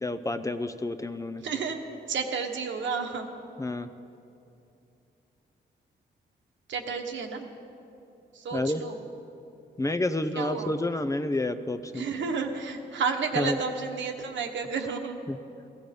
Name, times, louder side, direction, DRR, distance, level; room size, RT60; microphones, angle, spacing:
voice 1, 0.0-1.4 3.6-3.9 8.5-8.8 9.8-12.1 13.4-13.6 15.3-15.4, left 2 dB, 15° left, 9 dB, 0.6 m, -29 dB
voice 2, 1.4-1.8 2.1-3.3 6.7-7.5 8.3-9.0 10.3-10.7 11.9-15.2, right 5 dB, 90° right, 4 dB, 1.3 m, -31 dB
15.5 x 14.5 x 5.3 m, 2.7 s
cardioid pair, 100°, 19 cm